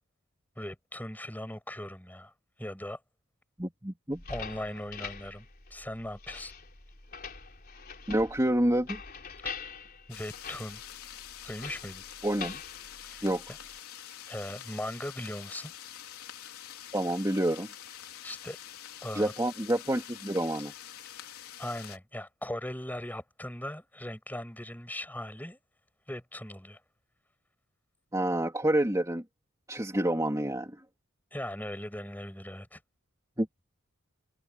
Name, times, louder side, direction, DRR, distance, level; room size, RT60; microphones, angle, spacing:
voice 1, 0.6-2.3 2.6-3.0 4.3-5.5 5.7-6.5 10.1-10.8 11.4-12.0 13.0-13.2 14.3-15.7 18.2-18.6 19.0-19.3 21.6-25.6 26.1-26.8 31.3-32.8, left 1 dB, 10° left, 6.9 m, -39 dB
voice 2, 3.6-4.2 8.1-9.0 12.2-12.6 13.2-13.4 16.9-17.7 19.1-20.7 28.1-29.2 29.7-30.8 33.4-33.5, right 1 dB, 15° right, 3.0 m, -28 dB
sound 1, 4.1-13.8, left 5 dB, 40° left, 4.1 m, -44 dB
sound 2, 10.1-22.0, left 10 dB, 75° left, 3.9 m, -46 dB
head